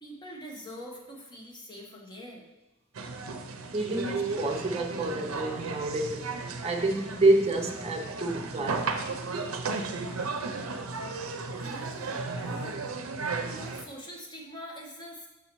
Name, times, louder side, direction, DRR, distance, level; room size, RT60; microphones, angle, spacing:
voice 1, 0.0-2.5 11.5-12.8 13.5-15.3, equal, 20° left, -2 dB, 0.9 m, -44 dB
sound 1, 3.0-13.8, right 4 dB, 85° right, 0.5 m, -34 dB
voice 2, 3.7-6.4 6.6-8.9, right 2 dB, 30° right, 2 dB, 0.6 m, -28 dB
6.1 x 5.4 x 3.0 m, 0.99 s
head